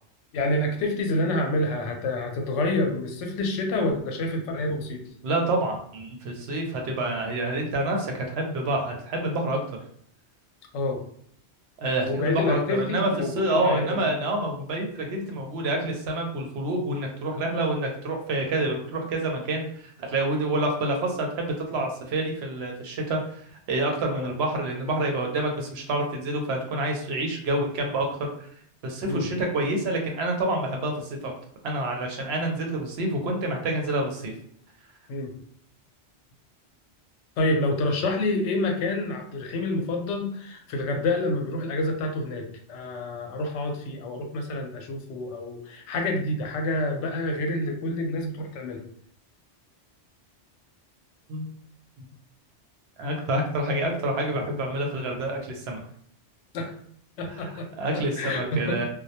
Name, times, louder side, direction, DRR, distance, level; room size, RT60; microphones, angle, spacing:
voice 1, 0.3-5.1 10.7-11.0 12.0-14.1 24.1-24.3 29.1-29.3 35.1-35.3 37.4-48.8 56.5-56.7 57.2-58.9, left 2 dB, 85° left, 3 dB, 0.9 m, -28 dB
voice 2, 5.2-9.6 11.8-28.5 28.8-31.3 31.6-34.3 51.3-51.5 53.0-55.8 57.3-58.9, right 1 dB, 70° right, 2 dB, 0.8 m, -28 dB
2.2 x 2.1 x 2.7 m, 0.63 s
omnidirectional pair, 1.2 m